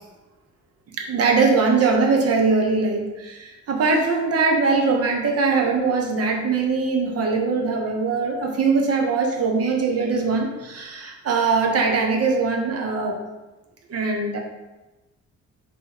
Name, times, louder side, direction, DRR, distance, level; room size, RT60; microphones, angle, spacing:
voice 1, 1.0-13.2 13.9-14.4, right 4 dB, 55° right, 1 dB, 0.9 m, -21 dB
4.0 x 3.0 x 3.9 m, 1.1 s
cardioid pair, 90°, 30 cm